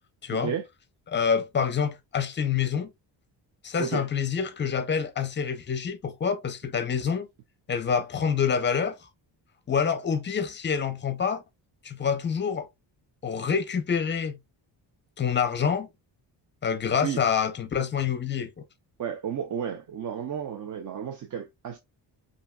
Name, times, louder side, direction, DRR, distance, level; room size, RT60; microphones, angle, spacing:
voice 1, 1.1-2.9 3.6-7.3 7.7-9.0 9.7-11.4 11.8-12.7 13.2-14.4 15.2-15.9 16.6-18.5, left 6 dB, 25° left, 0.5 m, -27 dB
voice 2, 19.0-21.8, right 8 dB, 45° right, 0.5 m, -32 dB
5.5 x 2.7 x 2.3 m
wide cardioid pair, 175°, 43 cm